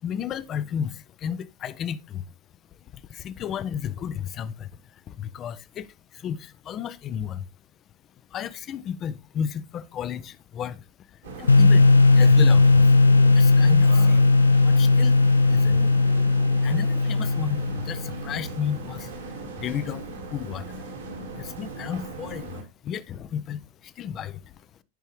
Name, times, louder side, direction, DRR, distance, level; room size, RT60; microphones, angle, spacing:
voice 1, 0.0-2.3 2.8-7.5 8.3-12.9 13.3-14.3 14.6-15.8 16.6-20.0 20.3-20.8 21.4-24.6, left 8 dB, 30° left, 0.6 m, -33 dB
sound 1, 11.2-22.6, right 2 dB, 65° right, 2.1 m, -37 dB
sound 2, 11.5-18.3, left 3 dB, 75° left, 0.4 m, -17 dB
12.5 x 5.5 x 3.1 m
figure-of-eight pair, 90°, 0 cm